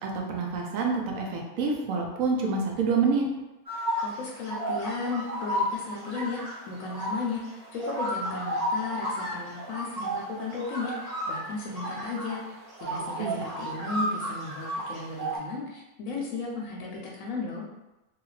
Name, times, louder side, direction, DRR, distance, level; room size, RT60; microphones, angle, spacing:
voice 1, 0.0-3.3 13.2-13.4, right 4 dB, 75° right, 0 dB, 1.0 m, -27 dB
sound 1, 3.7-15.4, equal, 20° right, 0.9 m, -33 dB
voice 2, 4.0-17.7, left 3 dB, 75° left, -2 dB, 0.9 m, -35 dB
2.8 x 2.4 x 3.1 m, 1.0 s
omnidirectional pair, 1.4 m